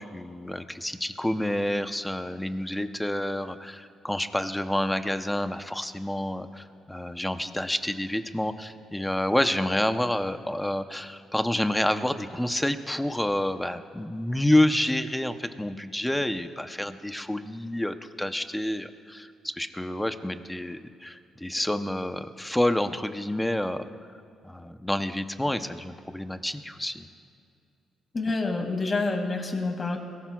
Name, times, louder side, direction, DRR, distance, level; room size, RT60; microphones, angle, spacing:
voice 1, 0.0-23.8 24.4-27.1, left 1 dB, 5° left, 9 dB, 0.8 m, -28 dB
voice 2, 28.1-30.0, left 3 dB, 35° left, 3 dB, 2.3 m, -27 dB
22.5 x 18.0 x 2.4 m, 2.5 s
cardioid pair, 90°, 0 cm